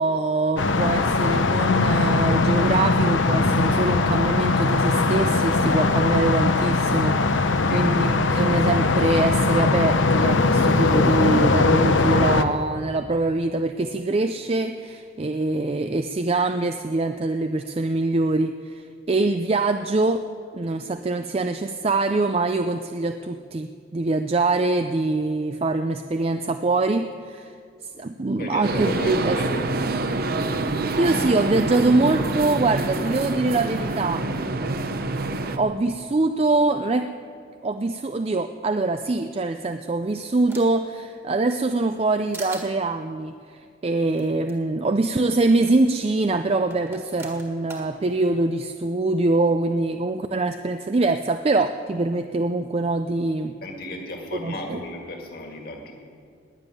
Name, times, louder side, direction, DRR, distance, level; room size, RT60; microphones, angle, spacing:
voice 1, 0.0-20.3 20.5-27.5 28.0-29.4 31.0-34.9 35.6-37.1 37.6-53.5 54.4-54.8, right 2 dB, 30° right, 8 dB, 0.4 m, -24 dB
sound 1, 0.6-12.4, left 3 dB, 70° left, 0.8 m, -20 dB
voice 2, 7.5-7.9 28.4-29.6 53.6-55.9, left 1 dB, 50° left, 2 dB, 2.0 m, -34 dB
sound 2, 28.6-35.6, right 2 dB, 50° right, 0.8 m, -26 dB
sound 3, 39.5-40.9 41.3-42.1 42.3-42.7 44.2-44.3 44.5-44.6 45.6-45.7 46.7-47.9, right 2 dB, 15° right, 1.8 m, -41 dB
19.5 x 7.3 x 9.3 m, 2.3 s
head